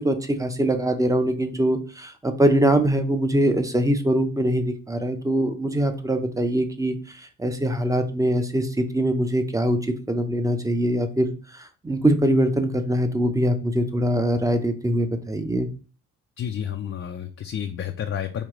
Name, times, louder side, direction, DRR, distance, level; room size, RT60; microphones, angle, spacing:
voice 1, 0.0-15.7, right 1 dB, 10° right, 7 dB, 0.7 m, -23 dB
voice 2, 16.4-18.5, left 9 dB, 40° left, 4 dB, 0.5 m, -30 dB
4.7 x 2.8 x 3.7 m, 0.37 s
cardioid pair, 85°, 33 cm